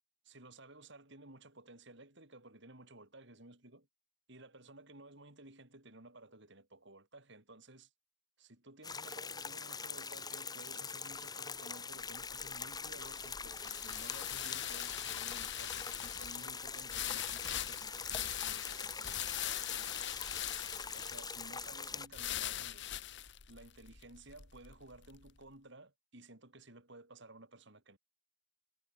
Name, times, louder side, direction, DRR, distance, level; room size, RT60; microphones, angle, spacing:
voice 1, 0.2-3.9 4.3-7.9 8.4-20.0 20.9-22.9 23.5-28.0, right 2 dB, 65° right, 7.3 m, -56 dB
sound 1, 8.8-22.1, left 5 dB, 20° left, 1.3 m, -43 dB
sound 2, 12.0-25.3, left 11 dB, 65° left, 1.5 m, -42 dB
head